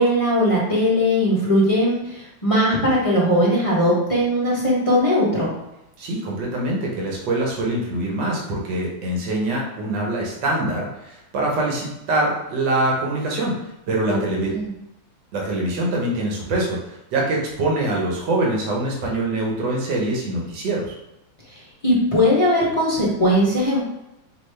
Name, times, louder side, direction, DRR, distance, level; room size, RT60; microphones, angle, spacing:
voice 1, 0.0-5.5 14.1-14.2 14.5-14.7 21.5-23.8, equal, 30° left, -6 dB, 0.6 m, -19 dB
voice 2, 6.0-13.6 13.9-14.5 15.3-20.9, right 2 dB, 65° right, -2 dB, 1.7 m, -24 dB
5.5 x 2.8 x 3.3 m, 0.90 s
omnidirectional pair, 2.2 m